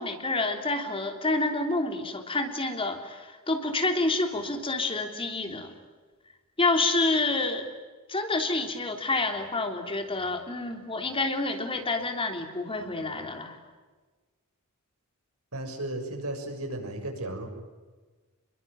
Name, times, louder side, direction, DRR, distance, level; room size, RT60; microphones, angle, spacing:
voice 1, 0.0-5.7 6.6-7.7 8.1-13.6, left 2 dB, 25° left, 5 dB, 3.3 m, -28 dB
voice 2, 15.5-17.5, right 1 dB, 75° right, 4 dB, 6.7 m, -34 dB
28.5 x 22.5 x 9.1 m, 1.3 s
head